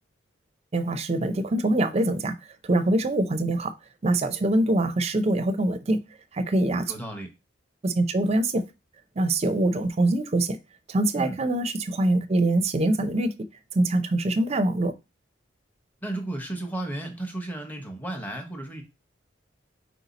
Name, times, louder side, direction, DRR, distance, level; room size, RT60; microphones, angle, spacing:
voice 1, 0.7-2.3 2.6-3.7 4.0-6.0 6.3-6.9 7.8-8.6 9.2-10.6 10.9-13.3 13.7-14.9, right 1 dB, 35° right, 0.5 m, -24 dB
voice 2, 6.9-7.3 11.2-11.4 16.0-18.8, right 1 dB, 10° left, 0.9 m, -33 dB
4.5 x 2.7 x 3.9 m
head